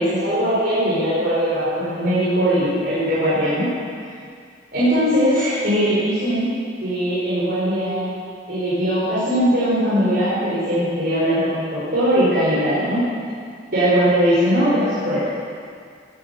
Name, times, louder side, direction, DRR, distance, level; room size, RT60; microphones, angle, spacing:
voice 1, 0.0-3.7 4.0-4.1 4.7-6.5 6.8-8.1 8.5-13.0 13.7-15.2, equal, 55° right, -10 dB, 5.4 m, -20 dB
16.5 x 10.5 x 7.3 m, 2.2 s
head